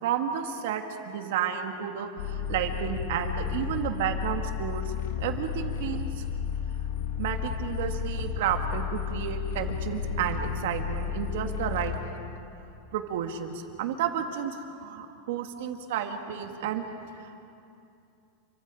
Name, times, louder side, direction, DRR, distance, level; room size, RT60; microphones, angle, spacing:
voice 1, 0.0-6.2 7.2-11.9 12.9-16.8 17.1-17.4, right 8 dB, 65° right, 5 dB, 2.1 m, -32 dB
sound 1, 2.2-12.0, left 7 dB, 80° left, 1.8 m, -32 dB
28.5 x 24.5 x 5.0 m, 2.6 s
supercardioid pair, 170°, 0 cm